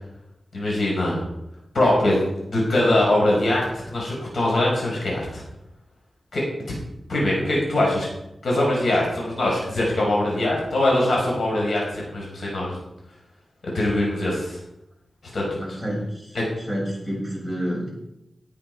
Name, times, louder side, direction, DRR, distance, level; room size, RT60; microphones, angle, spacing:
voice 1, 0.5-1.2 1.7-2.2 2.5-5.4 6.3-6.7 7.1-8.1 8.4-12.7 13.6-14.6 15.3-15.6 16.3-16.4, left 1 dB, 70° left, -3 dB, 4.9 m, -22 dB
voice 2, 15.6-16.3 16.6-17.9, equal, 15° left, -4 dB, 6.6 m, -29 dB
18.5 x 9.1 x 4.7 m, 0.88 s
wide cardioid pair, 105°, 0 cm